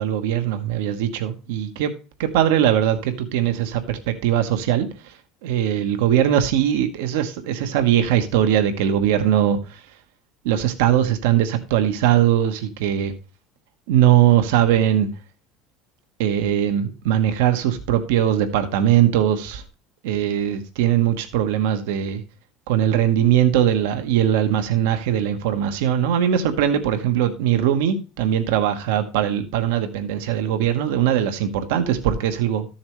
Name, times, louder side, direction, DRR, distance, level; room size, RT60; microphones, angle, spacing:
voice 1, 0.0-1.9 2.2-4.9 5.4-9.8 10.4-13.1 13.9-15.1 16.2-19.6 20.0-22.2 22.7-32.7, right 10 dB, 90° right, 8 dB, 1.1 m, -20 dB
13.0 x 7.2 x 3.1 m, 0.32 s
cardioid pair, 130°, 0 cm